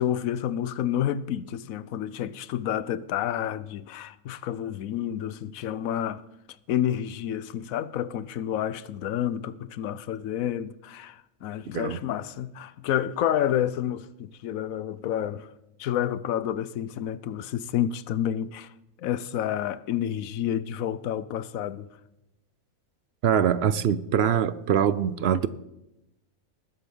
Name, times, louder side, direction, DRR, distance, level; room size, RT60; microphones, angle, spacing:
voice 1, 0.0-6.2 6.7-15.5 15.8-18.7 19.0-21.9, left 10 dB, 75° left, 1.1 m, -29 dB
voice 2, 23.2-25.5, right 8 dB, 60° right, 0.7 m, -23 dB
19.5 x 8.1 x 5.4 m
omnidirectional pair, 1.5 m